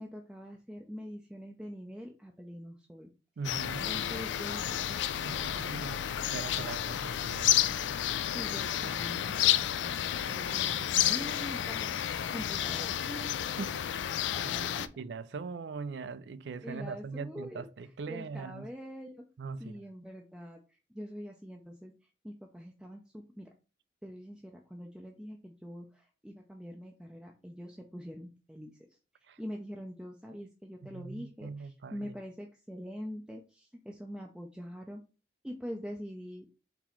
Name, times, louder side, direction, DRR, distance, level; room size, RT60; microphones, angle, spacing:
voice 1, 0.0-3.1 3.9-5.9 8.3-13.5 14.5-14.8 16.6-17.7 18.1-19.3 19.6-23.5 24.0-29.0 29.4-35.0 35.4-36.5, equal, 5° right, 0.4 m, -44 dB
sound 1, 3.4-14.9, left 11 dB, 80° left, 0.3 m, -31 dB
voice 2, 3.4-3.9 5.2-6.0 6.3-7.6 13.6-14.0 14.4-18.7 19.4-19.8 29.3-29.4 30.9-32.1, right 4 dB, 70° right, 0.4 m, -41 dB
4.1 x 3.0 x 4.3 m
head